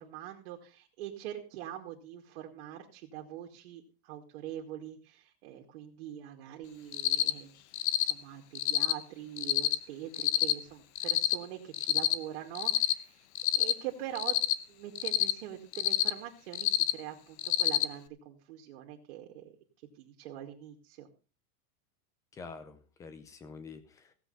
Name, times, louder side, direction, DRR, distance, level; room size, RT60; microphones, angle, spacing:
voice 1, 0.0-7.6 8.0-13.3 13.5-14.4 14.7-19.4 20.0-21.1, right 11 dB, 50° right, 1 dB, 2.3 m, -43 dB
Cricket, 6.9-7.3 7.7-8.1 8.5-8.9 9.4-9.7 10.1-10.5 11.0-11.3 11.7-12.1 12.5-12.9 13.3-13.7 14.1-14.5 15.0-15.3 15.7-16.1 16.5-16.9 17.4-17.8, left 14 dB, 50° left, 1.0 m, -27 dB
voice 2, 22.3-24.1, left 4 dB, 10° left, 11 dB, 0.6 m, -47 dB
16.5 x 8.0 x 5.5 m, 0.35 s
supercardioid pair, 175°, 43 cm